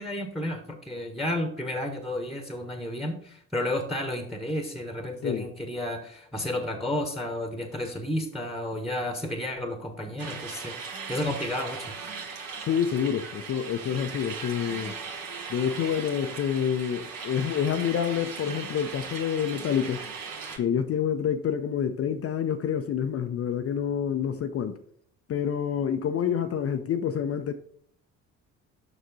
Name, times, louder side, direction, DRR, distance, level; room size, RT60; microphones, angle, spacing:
voice 1, 0.0-10.7 11.1-11.9, left 1 dB, ahead, 1.2 m, -32 dB
sound 1, 10.2-20.6, right 5 dB, 55° right, 1.6 m, -38 dB
voice 2, 12.7-15.0 15.5-20.1 20.6-24.8 25.3-27.5, left 8 dB, 35° left, 0.6 m, -27 dB
6.8 x 6.1 x 4.0 m
figure-of-eight pair, 50°, 41 cm